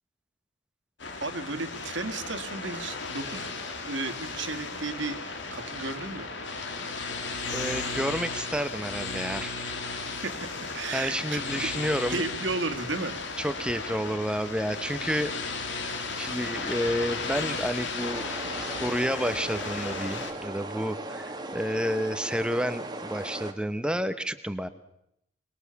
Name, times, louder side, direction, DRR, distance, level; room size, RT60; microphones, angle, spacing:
sound 1, 1.0-20.3, left 3 dB, 60° left, 2.6 m, -35 dB
voice 1, 1.2-3.5 3.8-5.2 5.5-6.3 10.2-11.4 12.1-13.1, right 3 dB, 60° right, 6 dB, 1.9 m, -33 dB
voice 2, 7.5-9.5 10.9-12.2 13.4-15.3 15.7-15.9 16.2-18.3 18.6-24.7, equal, 5° right, 12 dB, 0.9 m, -30 dB
sound 2, 18.0-23.5, right 2 dB, 20° right, 1.5 m, -38 dB
23.0 x 21.5 x 7.0 m, 0.78 s
head